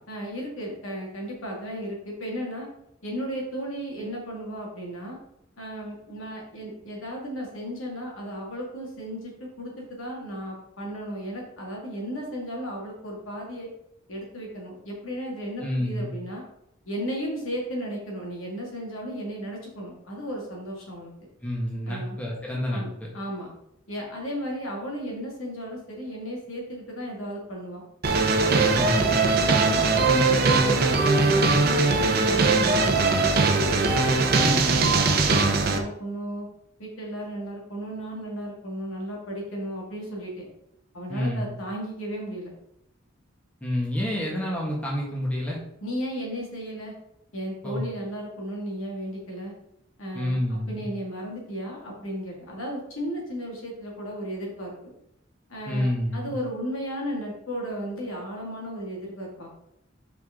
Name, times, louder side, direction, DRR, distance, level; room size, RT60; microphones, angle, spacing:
voice 1, 0.1-2.7 3.0-5.2 5.6-13.7 14.1-16.4 16.9-21.1 21.9-22.2 22.7-23.5 23.9-27.8 28.3-33.7 34.2-36.5 36.8-40.5 40.9-42.5 45.8-47.0 47.3-49.5 50.0-54.9 55.5-59.5, equal, 90° left, -2 dB, 2.2 m, -35 dB
voice 2, 15.6-16.1 21.4-22.8 28.7-29.1 41.1-41.5 43.6-45.6 47.6-47.8 50.1-50.8 55.7-56.3, equal, 5° left, -4 dB, 1.6 m, -28 dB
sound 1, 28.0-35.8, right 3 dB, 50° right, 0.8 m, -21 dB
6.0 x 4.9 x 3.8 m, 0.78 s
head